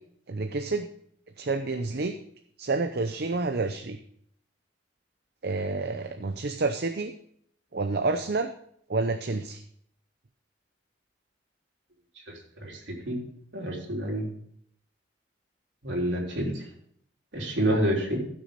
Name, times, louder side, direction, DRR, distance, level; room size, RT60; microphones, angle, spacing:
voice 1, 0.3-0.9 1.4-2.1 2.6-4.0 5.4-7.1 7.7-8.5 8.9-9.6, right 3 dB, 60° right, 7 dB, 0.7 m, -29 dB
voice 2, 13.5-14.2 15.8-16.5 17.3-18.2, right 1 dB, 75° right, -1 dB, 3.5 m, -27 dB
15.5 x 6.2 x 5.2 m, 0.65 s
head